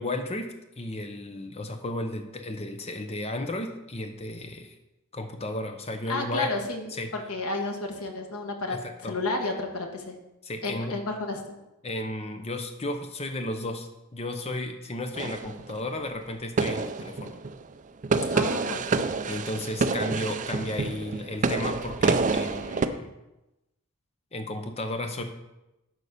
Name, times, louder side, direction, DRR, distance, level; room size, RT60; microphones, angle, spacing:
voice 1, 0.0-4.7 5.1-6.5 6.9-7.1 8.7-9.1 10.4-11.0 11.8-17.4 19.3-23.1 24.3-25.2, left 1 dB, 30° left, 6 dB, 0.9 m, -34 dB
voice 2, 6.1-10.1 10.6-11.6 18.3-19.1, left 2 dB, 80° left, 3 dB, 1.4 m, -32 dB
sound 1, 15.2-16.0 16.6-17.6 18.0-22.9, right 3 dB, 35° right, 0.4 m, -27 dB
11.0 x 4.1 x 6.6 m, 0.95 s
head